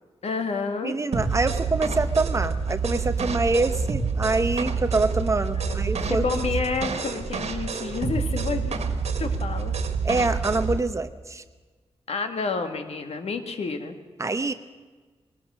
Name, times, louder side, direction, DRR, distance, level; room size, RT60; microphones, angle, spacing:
voice 1, 0.2-0.9 5.5-8.8 9.2-9.8 12.1-14.0, left 4 dB, 75° left, 7 dB, 2.0 m, -29 dB
voice 2, 0.8-6.2 10.0-11.4 14.2-14.5, right 3 dB, 30° right, 10 dB, 0.9 m, -25 dB
sound 1, 1.1-10.8, right 5 dB, 85° right, 1.7 m, -27 dB
21.5 x 19.0 x 6.3 m, 1.4 s
wide cardioid pair, 170°, 11 cm